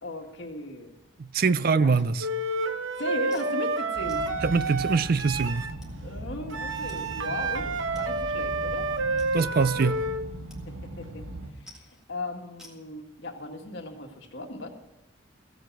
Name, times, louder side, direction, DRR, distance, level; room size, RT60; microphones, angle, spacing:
voice 1, 0.0-0.9 1.7-1.9 3.0-4.3 6.0-8.9 10.7-11.3 11.7-11.8 12.1-14.7, left 2 dB, 55° left, 1.9 m, -37 dB
voice 2, 1.2-2.3 4.4-5.7 9.3-10.0, right 4 dB, 45° right, 0.4 m, -23 dB
Wind instrument woodwind instrument, 2.2-5.7 6.5-10.2, right 2 dB, 65° right, 0.9 m, -29 dB
sound 1, 3.3-3.5 4.1-4.3 5.1-5.2 5.8-6.0 6.9-7.0 7.3-7.4 8.0-8.1 8.5-8.6 9.2-9.7 10.5-10.6 10.9-11.2 11.7-12.0 12.6-12.8, left 1 dB, 5° right, 1.9 m, -52 dB
sound 2, 3.9-11.5, right 1 dB, 85° right, 1.6 m, -39 dB
15.5 x 8.0 x 7.6 m
head